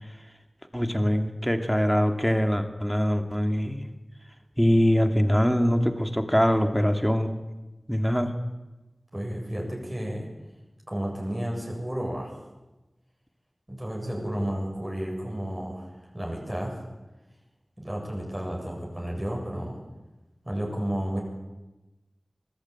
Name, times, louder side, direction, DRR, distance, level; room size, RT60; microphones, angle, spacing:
voice 1, 0.7-3.8 4.6-7.3 7.9-8.3, equal, ahead, 6 dB, 2.6 m, -23 dB
voice 2, 9.1-10.2 10.9-12.3 13.7-16.8 17.8-19.7 20.4-21.2, equal, 20° right, -2 dB, 7.7 m, -32 dB
24.5 x 18.5 x 9.0 m, 1.1 s
wide cardioid pair, 70°, 0 cm